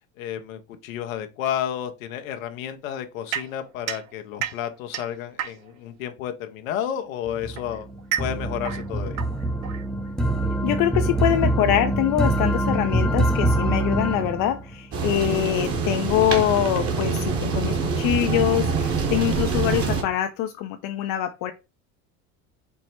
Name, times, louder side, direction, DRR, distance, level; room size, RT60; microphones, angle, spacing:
voice 1, 0.2-7.9 8.2-9.2, left 10 dB, 90° left, 0.7 m, -31 dB
sound 1, 3.3-5.9 6.9-10.3, right 10 dB, 90° right, 0.6 m, -33 dB
sound 2, 7.3-15.0, right 1 dB, ahead, 0.5 m, -24 dB
voice 2, 10.6-21.5, left 12 dB, 55° left, 0.5 m, -24 dB
sound 3, 14.9-20.0, right 4 dB, 35° right, 1.1 m, -25 dB
4.5 x 2.0 x 4.3 m
supercardioid pair, 90°, 39 cm